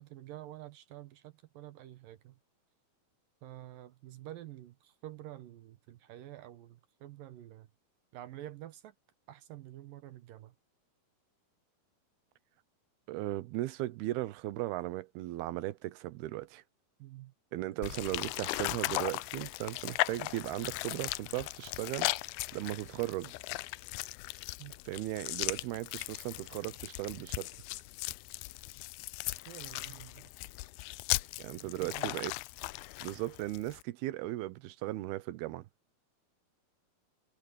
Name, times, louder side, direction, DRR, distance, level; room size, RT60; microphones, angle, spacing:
voice 1, 0.0-2.4 3.4-7.7 8.1-9.0 9.3-10.5 17.0-17.3 17.8-17.9 24.6-24.8 29.5-30.3 31.6-32.3, right 14 dB, 70° right, 2.5 m, -48 dB
voice 2, 13.1-16.6 17.5-22.1 22.5-23.3 24.9-27.5 31.4-32.3 33.0-35.7, right 16 dB, 90° right, 2.8 m, -37 dB
sound 1, 17.8-33.8, left 21 dB, 85° left, 2.3 m, -38 dB
omnidirectional pair, 4.4 m